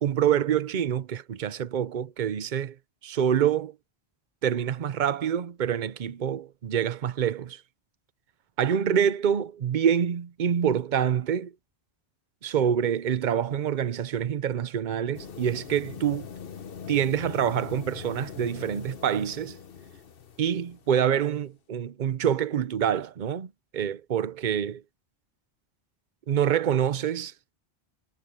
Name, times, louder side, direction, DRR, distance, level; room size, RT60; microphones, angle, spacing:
voice 1, 0.0-2.7 3.0-3.7 4.4-7.6 8.6-11.5 12.4-16.3 16.9-19.6 20.4-24.8 26.3-27.3, right 9 dB, 50° right, 0.8 m, -26 dB
sound 1, 15.1-21.1, left 7 dB, 60° left, 1.2 m, -42 dB
omnidirectional pair, 1.1 m